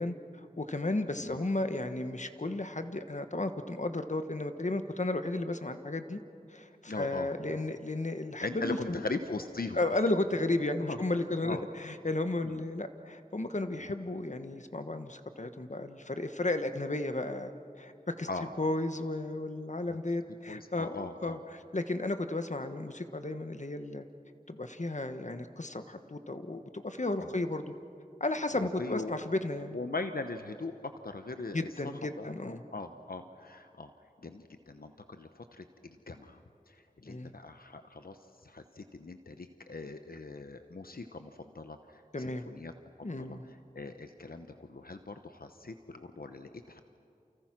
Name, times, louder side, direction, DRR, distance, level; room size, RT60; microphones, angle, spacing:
voice 1, 0.0-6.2 6.5-9.0 9.7-18.3 18.6-24.0 24.5-27.6 28.2-29.8 31.5-32.6 37.1-37.3 42.1-42.5 43.0-43.5, left 2 dB, 50° left, 8 dB, 1.4 m, -34 dB
voice 2, 6.9-7.3 8.4-9.8 10.8-11.0 11.4-11.6 12.4-12.6 13.8-13.9 18.3-18.5 20.5-21.4 27.2-27.3 28.8-29.2 29.7-31.6 32.2-33.9 34.2-36.4 36.7-42.7 43.0-46.8, left 3 dB, 75° left, 8 dB, 1.0 m, -40 dB
30.0 x 29.0 x 6.1 m, 2.5 s
wide cardioid pair, 45°, 15 cm